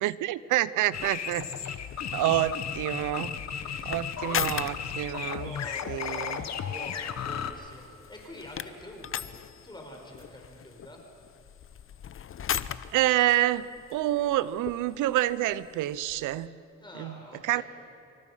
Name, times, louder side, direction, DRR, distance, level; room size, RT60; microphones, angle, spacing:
voice 1, 0.0-1.8 2.1-3.3 3.9-5.5 5.9-6.4 12.9-16.6 17.0-17.2 17.4-17.6, right 14 dB, 90° right, 17 dB, 0.7 m, -27 dB
sound 1, 0.9-7.5, left 8 dB, 60° left, 1.2 m, -35 dB
sound 2, 0.9-16.5, left 9 dB, 45° left, 0.7 m, -40 dB
voice 2, 3.0-4.9 5.1-9.4 9.6-11.1 16.8-17.6, left 1 dB, 15° left, 1 dB, 4.7 m, -46 dB
25.0 x 24.5 x 5.7 m, 2.5 s
cardioid pair, 90°, 30 cm